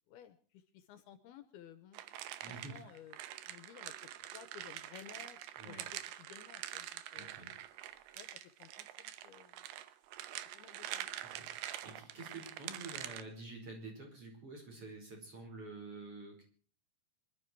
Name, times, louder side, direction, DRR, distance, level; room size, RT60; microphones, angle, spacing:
voice 1, 0.1-2.0 2.5-3.2 3.5-3.9 4.2-5.4 5.7-7.3 8.2-9.6 10.5-11.1, left 9 dB, 75° left, 11 dB, 2.7 m, -56 dB
sound 1, 1.9-13.2, right 13 dB, 75° right, 2.7 m, -45 dB
voice 2, 2.4-2.9 5.6-5.9 7.1-7.6 11.2-16.4, right 2 dB, 35° right, 1 dB, 5.8 m, -49 dB
25.5 x 12.0 x 4.6 m, 0.41 s
omnidirectional pair, 4.8 m